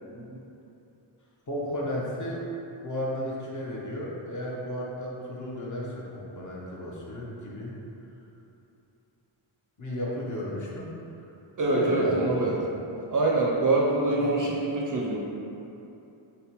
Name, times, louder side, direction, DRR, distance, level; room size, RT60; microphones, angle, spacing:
voice 1, 1.5-2.4 2.8-7.8 9.8-11.2 11.6-12.6 14.2-14.5, left 1 dB, 40° left, -5 dB, 0.7 m, -33 dB
voice 2, 11.6-12.6 13.1-15.2, right 2 dB, 45° right, -3 dB, 0.4 m, -25 dB
6.5 x 2.2 x 2.9 m, 2.9 s
wide cardioid pair, 150°, 48 cm